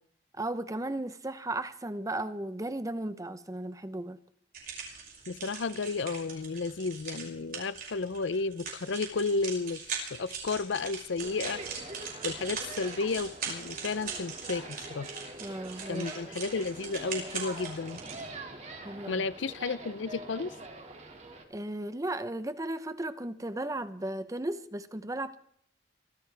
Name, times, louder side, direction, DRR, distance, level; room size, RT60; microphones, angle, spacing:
voice 1, 0.3-4.2 15.4-16.4 18.8-19.2 21.5-25.4, right 1 dB, 20° right, 0.8 m, -35 dB
sound 1, 4.5-18.2, right 5 dB, 50° right, 6.1 m, -41 dB
voice 2, 5.3-9.8 10.1-11.6 12.2-15.1 15.9-18.0 19.1-20.5, left 4 dB, 85° left, 0.6 m, -32 dB
sound 2, 11.2-21.4, right 2 dB, 35° right, 2.2 m, -44 dB
24.5 x 15.5 x 3.4 m
head